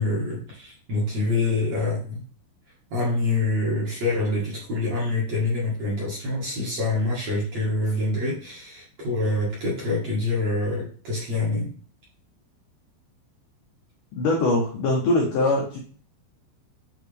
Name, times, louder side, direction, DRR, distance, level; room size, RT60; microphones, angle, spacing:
voice 1, 0.0-2.2 2.9-11.7, left 2 dB, 50° right, -6 dB, 2.1 m, -26 dB
voice 2, 14.2-15.8, left 2 dB, 80° left, 0 dB, 1.9 m, -22 dB
9.0 x 3.8 x 3.5 m, 0.43 s
omnidirectional pair, 5.3 m